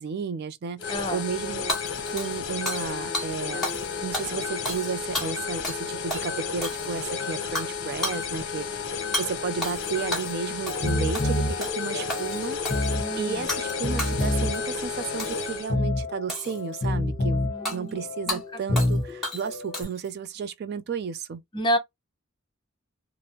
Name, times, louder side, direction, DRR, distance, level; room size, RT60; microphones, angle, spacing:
voice 1, 0.0-1.7 2.1-3.7 4.0-21.4, right 6 dB, 50° right, 0.3 m, -33 dB
sound 1, 0.8-15.7, left 6 dB, 60° left, 0.8 m, -32 dB
voice 2, 0.9-1.2 13.0-13.5 17.4-18.0 18.3-18.6 21.5-21.8, equal, 25° left, 0.7 m, -29 dB
Hammer / Shatter, 1.7-2.9 3.1-3.3 3.6-3.9 4.1-5.8 6.1-6.3 6.6-7.1 7.6-7.7 8.0-8.2 9.1-9.3 9.6-10.4 10.7-10.9 11.1-11.8 12.1-12.9 13.5-13.7 14.0-14.6 15.2-15.5 16.3-16.9 17.7-17.8 18.3-18.4 18.8-19.0 19.2-20.1, left 1 dB, ahead, 1.2 m, -32 dB
sound 2, 10.7-19.8, left 1 dB, 40° left, 1.2 m, -29 dB
3.3 x 2.0 x 2.8 m
head